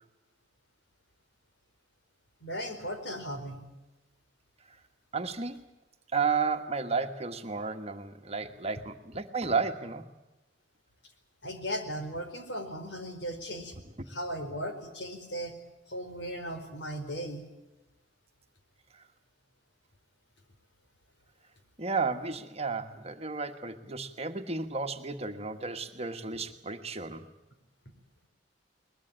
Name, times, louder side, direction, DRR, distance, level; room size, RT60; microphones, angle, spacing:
voice 1, 2.4-3.6 11.4-13.7 14.1-15.5 15.9-17.4, equal, 70° left, 6 dB, 4.6 m, -37 dB
voice 2, 5.1-5.6 6.1-10.1 18.9-19.1 21.8-27.3, right 4 dB, 35° right, 6 dB, 1.5 m, -33 dB
22.5 x 21.0 x 8.9 m, 1.0 s
head